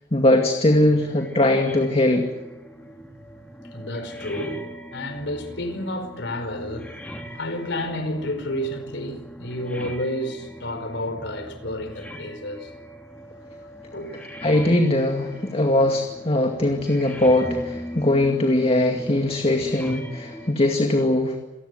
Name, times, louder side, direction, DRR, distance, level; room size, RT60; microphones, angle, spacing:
voice 1, 0.1-2.3 14.4-21.4, left 1 dB, 35° left, 2.2 m, -20 dB
sound 1, 0.7-20.5, equal, 10° left, 2.9 m, -39 dB
voice 2, 3.7-6.9 7.3-12.7 13.9-14.2, left 1 dB, 70° left, 4.7 m, -30 dB
28.0 x 19.0 x 9.5 m
head